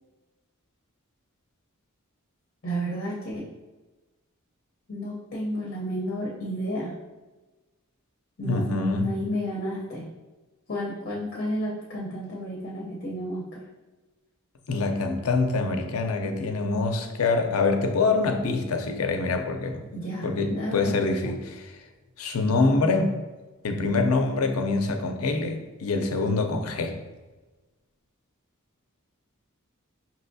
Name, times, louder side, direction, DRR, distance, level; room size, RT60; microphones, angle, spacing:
voice 1, 2.6-3.4 4.9-6.9 8.4-8.6 9.0-10.0 10.7-13.5 19.9-21.3, equal, 45° left, -4 dB, 0.7 m, -31 dB
voice 2, 8.4-9.1 14.7-19.8 20.2-21.8 22.2-23.2 23.6-27.0, left 3 dB, 80° left, 5 dB, 0.5 m, -25 dB
5.5 x 2.9 x 2.6 m, 1.2 s
head